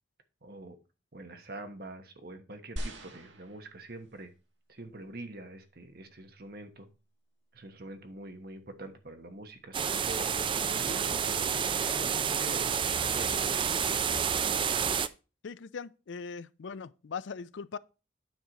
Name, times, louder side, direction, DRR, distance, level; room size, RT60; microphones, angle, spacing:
voice 1, 0.4-0.8 1.1-4.3 4.7-6.9 7.5-13.6, right 2 dB, 55° right, 1.2 m, -45 dB
sound 1, 2.8-4.3 5.0-5.1, equal, 75° right, 1.6 m, -41 dB
sound 2, 9.7-15.1, right 7 dB, 25° right, 0.4 m, -29 dB
voice 2, 15.4-17.8, left 5 dB, 75° left, 0.4 m, -40 dB
9.4 x 6.3 x 4.0 m
head